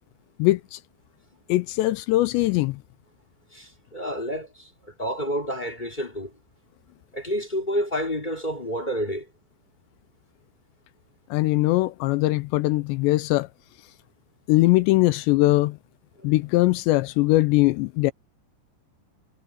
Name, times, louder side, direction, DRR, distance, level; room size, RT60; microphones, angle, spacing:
voice 1, 0.4-0.8 1.5-2.8 11.3-13.5 14.5-15.8 16.2-18.1, left 18 dB, 85° left, 2.9 m, -21 dB
voice 2, 3.5-6.3 7.1-9.3, equal, 15° left, 2.3 m, -29 dB
omnidirectional pair, 5.0 m